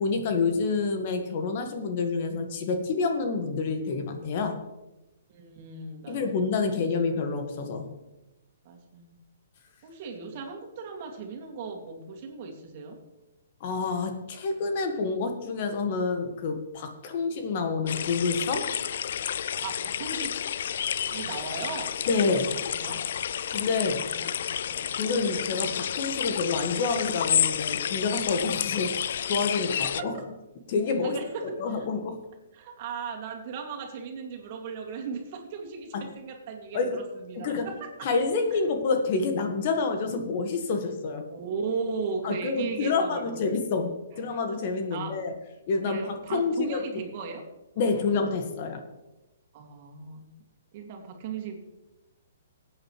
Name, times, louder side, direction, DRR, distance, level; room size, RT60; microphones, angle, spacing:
voice 1, 0.0-4.6 6.1-7.9 13.6-18.7 22.1-22.5 23.5-24.1 25.0-29.0 29.3-30.1 30.7-32.2 35.9-36.0 36.7-37.0 37.3-37.7 38.0-41.2 42.2-45.3 45.7-47.0 47.8-48.8, left 4 dB, 45° left, 5 dB, 1.7 m, -28 dB
voice 2, 5.3-6.8 7.1-7.2 8.6-9.1 9.8-13.0 19.6-20.4 21.1-22.5 22.7-23.2 24.0-25.0 29.5-30.3 31.0-31.9 32.5-38.1 41.3-43.6 44.1-44.2 44.9-45.2 45.8-47.5 47.7-47.9 49.5-50.3 50.7-51.6, right 5 dB, 45° right, 1 dB, 2.4 m, -37 dB
sound 1, 17.9-30.0, left 9 dB, 65° left, 0.3 m, -30 dB
17.0 x 8.8 x 3.2 m, 0.99 s
hypercardioid pair, 140°, 0 cm